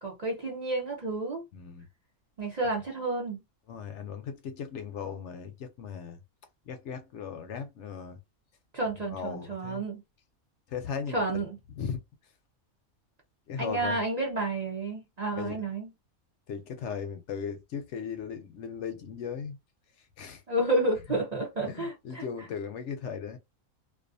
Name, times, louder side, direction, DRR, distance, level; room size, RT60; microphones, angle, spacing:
voice 1, 0.0-1.4 2.4-3.4 8.7-10.0 11.1-11.6 13.6-15.9 20.5-22.2, right 2 dB, 40° right, 0.6 m, -30 dB
voice 2, 1.5-1.9 3.7-6.2 6.7-8.2 9.1-9.8 10.7-11.4 11.8-12.0 13.5-14.0 15.3-15.6 16.5-19.6 20.2-20.4 21.6-23.4, left 6 dB, 70° left, 0.8 m, -37 dB
2.4 x 2.3 x 2.5 m
omnidirectional pair, 1.4 m